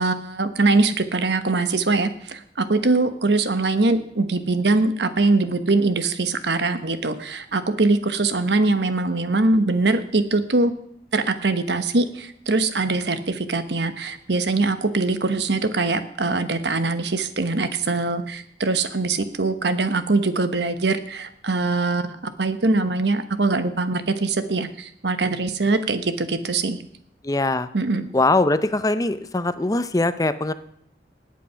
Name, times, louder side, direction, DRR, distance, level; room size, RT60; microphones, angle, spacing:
voice 1, 0.0-10.7 11.1-26.8 27.7-28.1, right 3 dB, 75° right, 10 dB, 1.1 m, -22 dB
voice 2, 27.2-27.7 28.1-30.5, left 2 dB, 20° left, 12 dB, 0.6 m, -21 dB
19.0 x 8.5 x 5.7 m, 0.69 s
head